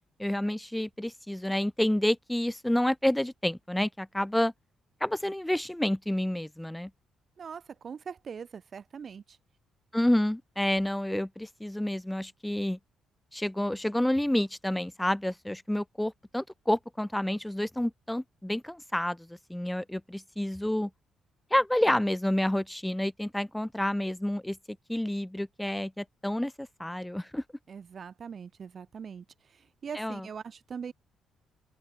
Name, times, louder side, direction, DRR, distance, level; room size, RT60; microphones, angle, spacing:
voice 1, 0.2-4.5 5.0-6.9 9.9-12.8 13.3-20.9 21.5-24.6 24.9-27.4 30.0-30.3, left 1 dB, 5° left, 0.4 m, -29 dB
voice 2, 7.4-9.4 27.7-30.9, right 6 dB, 45° right, 0.9 m, -42 dB
open air
cardioid pair, 90°, 0 cm